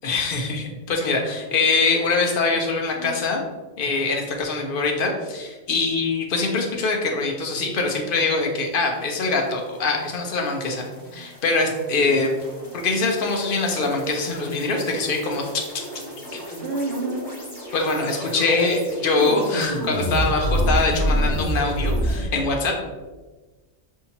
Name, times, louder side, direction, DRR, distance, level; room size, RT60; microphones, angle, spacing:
voice 1, 0.0-3.4 3.8-10.8 11.1-12.3 12.7-15.6 16.3-16.4 17.7-22.8, left 3 dB, 55° left, 1 dB, 0.8 m, -23 dB
sound 1, 10.0-22.3, equal, 20° left, 1.0 m, -29 dB
voice 2, 16.0-17.6, right 2 dB, 65° right, 0 dB, 1.0 m, -33 dB
5.4 x 2.8 x 2.8 m, 1.2 s
omnidirectional pair, 1.2 m